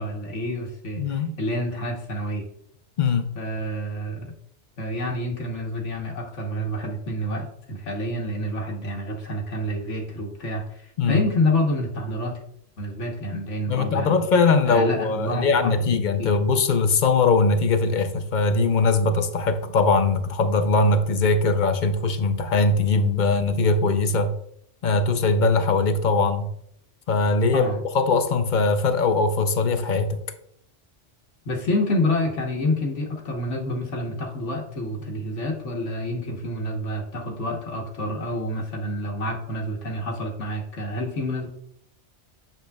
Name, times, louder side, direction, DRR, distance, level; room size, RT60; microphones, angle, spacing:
voice 1, 0.0-2.5 3.4-4.3 4.8-12.4 12.8-14.3 14.6-16.4 27.5-27.8 31.4-41.5, left 1 dB, 85° left, 0 dB, 1.5 m, -28 dB
voice 2, 1.0-1.3 3.0-3.3 11.0-11.2 13.7-24.3 24.8-26.5 27.1-27.7 27.9-30.2, left 3 dB, 50° left, 8 dB, 0.6 m, -21 dB
8.3 x 6.7 x 2.3 m, 0.70 s
omnidirectional pair, 1.2 m